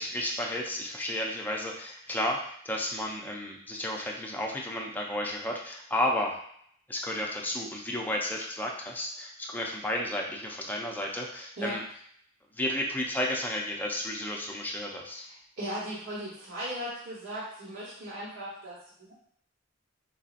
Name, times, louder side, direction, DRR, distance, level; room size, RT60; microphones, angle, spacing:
voice 1, 0.0-6.4 6.9-11.8 12.5-15.2, left 1 dB, 10° left, -1 dB, 0.5 m, -32 dB
voice 2, 15.1-19.1, equal, 70° right, -9 dB, 1.2 m, -38 dB
4.6 x 2.7 x 2.5 m, 0.66 s
head